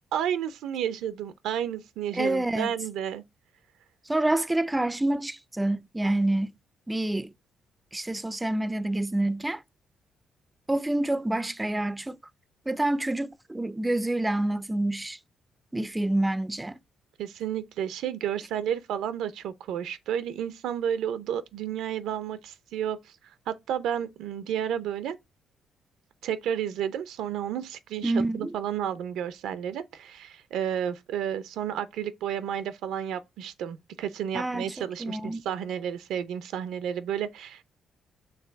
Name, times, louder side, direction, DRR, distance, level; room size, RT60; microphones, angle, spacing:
voice 1, 0.1-3.2 17.2-23.1 23.5-25.2 26.2-37.6, right 9 dB, 85° right, 0.5 m, -31 dB
voice 2, 2.1-2.7 4.1-6.5 6.9-7.3 7.9-9.6 10.7-12.2 12.7-15.2 15.7-16.8 28.0-28.5 34.3-35.4, right 1 dB, 10° right, 0.3 m, -27 dB
4.7 x 3.2 x 3.4 m
cardioid pair, 90°, 0 cm